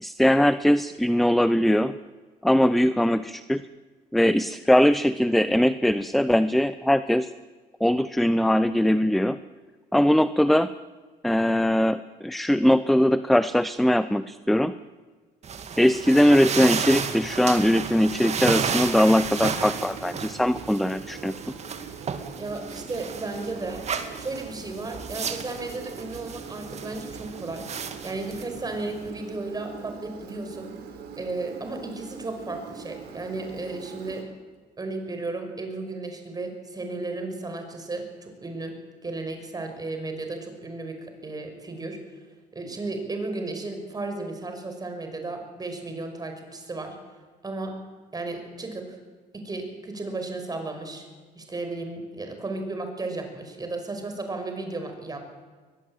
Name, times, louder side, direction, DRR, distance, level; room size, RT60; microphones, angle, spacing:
voice 1, 0.0-1.9 2.4-3.6 4.1-7.3 7.8-9.4 9.9-10.7 11.2-14.7 15.8-21.3, equal, ahead, 14 dB, 0.6 m, -21 dB
sound 1, 15.4-29.1, right 6 dB, 40° right, 2.4 m, -33 dB
Engine, 19.2-34.2, right 6 dB, 80° right, 4.5 m, -42 dB
voice 2, 22.4-23.8 24.2-27.7 28.0-30.7 31.2-34.3 34.8-42.0 42.5-47.0 47.4-47.8 48.1-49.0 49.3-51.1 51.4-55.3, right 2 dB, 20° right, 6 dB, 5.7 m, -34 dB
22.5 x 21.0 x 9.0 m, 1.4 s
cardioid pair, 110°, 17 cm